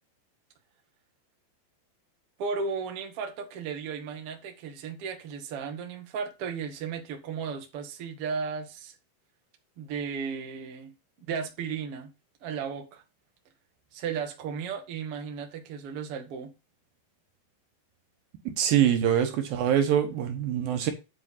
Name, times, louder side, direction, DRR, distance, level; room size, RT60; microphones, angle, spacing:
voice 1, 2.4-8.9 9.8-10.9 11.3-12.1 12.4-13.0 13.9-16.5, right 6 dB, 85° right, 1.2 m, -35 dB
voice 2, 18.5-20.9, right 10 dB, 70° right, 2.4 m, -24 dB
10.0 x 4.1 x 5.5 m
omnidirectional pair, 5.2 m